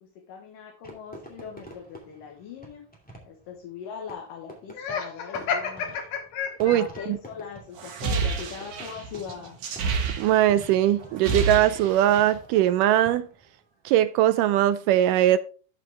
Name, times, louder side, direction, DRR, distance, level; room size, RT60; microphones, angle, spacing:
voice 1, 0.0-2.8 3.2-6.0 6.6-9.6, left 7 dB, 75° left, 2.9 m, -40 dB
Fireworks, 0.8-13.5, right 1 dB, 5° left, 1.7 m, -48 dB
Laughter, 4.7-7.1, left 6 dB, 60° left, 2.1 m, -30 dB
sound 1, 7.8-10.7 11.0-12.4, right 4 dB, 55° right, 2.1 m, -29 dB
voice 2, 10.2-13.3 13.9-15.4, right 12 dB, 80° right, 2.1 m, -20 dB
13.0 x 5.3 x 3.4 m
omnidirectional pair, 3.9 m